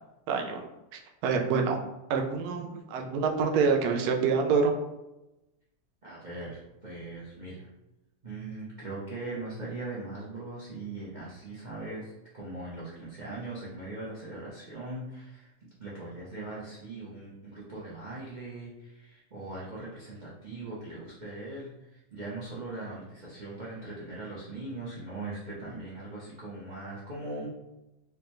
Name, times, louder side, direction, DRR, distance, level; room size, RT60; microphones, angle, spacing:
voice 1, 0.3-0.7 0.9-1.8 2.1-4.7, right 5 dB, 70° right, 3 dB, 1.0 m, -26 dB
voice 2, 6.0-7.7 8.2-15.5 15.8-27.5, right 2 dB, 45° right, -7 dB, 0.6 m, -40 dB
4.8 x 2.2 x 3.0 m, 0.95 s
omnidirectional pair, 1.9 m